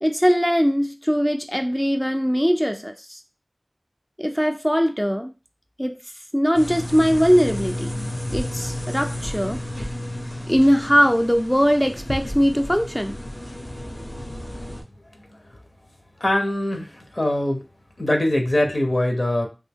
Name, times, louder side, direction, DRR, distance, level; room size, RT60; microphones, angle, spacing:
voice 1, 0.0-3.2 4.2-5.3 5.8-6.0 6.3-9.6 10.5-13.2, equal, 5° left, 0.4 m, -20 dB
sound 1, 6.5-14.8, left 1 dB, 85° left, 1.3 m, -32 dB
voice 2, 16.2-17.6 18.0-19.5, left 1 dB, 65° left, 0.8 m, -22 dB
3.5 x 2.6 x 3.4 m
wide cardioid pair, 40°, 0 cm